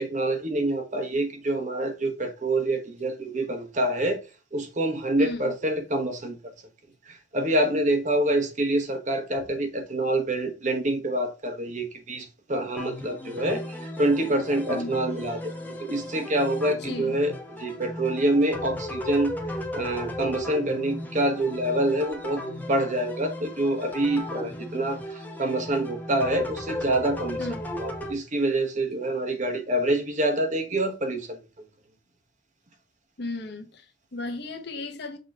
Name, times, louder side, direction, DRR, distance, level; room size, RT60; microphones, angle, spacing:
voice 1, 0.0-4.2 4.5-6.4 7.1-19.4 19.7-22.4 22.7-27.5 27.8-31.4, right 1 dB, 40° right, 1.1 m, -26 dB
voice 2, 5.2-5.5 14.7-14.9 16.8-17.1 27.4-27.6 33.2-35.2, left 2 dB, 60° left, 1.1 m, -35 dB
sound 1, 12.8-28.1, left 1 dB, 10° left, 0.9 m, -36 dB
6.5 x 3.0 x 4.9 m
head